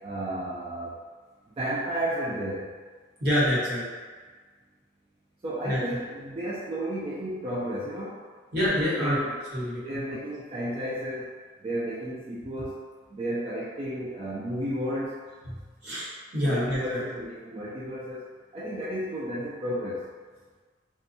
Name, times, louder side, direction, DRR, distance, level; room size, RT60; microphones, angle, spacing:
voice 1, 0.0-1.0 1.6-2.7 5.4-8.2 9.0-9.3 9.8-11.3 11.6-12.8 13.1-15.2 16.4-18.3 18.5-20.1, right 1 dB, 30° right, -9 dB, 0.3 m, -32 dB
voice 2, 3.2-3.8 5.6-5.8 8.5-9.2 9.5-9.8 15.8-16.1 16.3-17.0, equal, 55° right, -9 dB, 1.1 m, -26 dB
2.5 x 2.3 x 2.6 m, 1.5 s
head